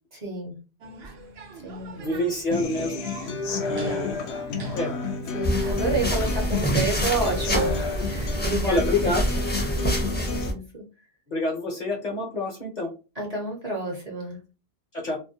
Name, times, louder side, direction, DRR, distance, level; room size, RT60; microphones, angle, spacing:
voice 1, 0.2-0.5 1.6-2.2 3.4-4.2 5.3-8.9 9.8-10.8 13.2-14.4, right 3 dB, 40° right, -1 dB, 0.7 m, -30 dB
sound 1, 0.8-7.8, right 2 dB, 70° right, 0.8 m, -42 dB
voice 2, 2.0-3.0 3.7-4.2 4.7-5.0 8.6-9.3 11.3-12.9 14.9-15.2, left 2 dB, 50° left, 0 dB, 0.7 m, -27 dB
Human voice / Acoustic guitar, 2.5-10.5, left 4 dB, 75° left, 0.8 m, -31 dB
sound 2, 5.4-10.5, equal, 15° left, 0.5 m, -26 dB
2.4 x 2.1 x 2.6 m, 0.32 s
omnidirectional pair, 1.1 m